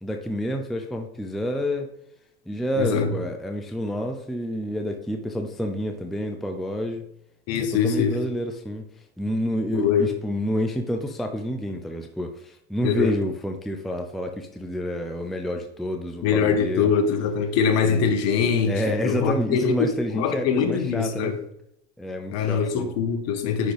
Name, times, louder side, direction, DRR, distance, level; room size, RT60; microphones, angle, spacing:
voice 1, 0.0-1.9 2.5-7.1 7.6-8.8 9.2-16.9 17.8-21.3 22.0-22.9, equal, ahead, 0.5 m, -29 dB
voice 2, 2.8-3.1 7.5-8.2 9.7-10.1 12.8-13.1 16.2-19.9 20.1-21.4 22.3-23.7, left 6 dB, 50° left, 1.2 m, -23 dB
10.0 x 3.9 x 3.4 m
supercardioid pair, 120°, 34 cm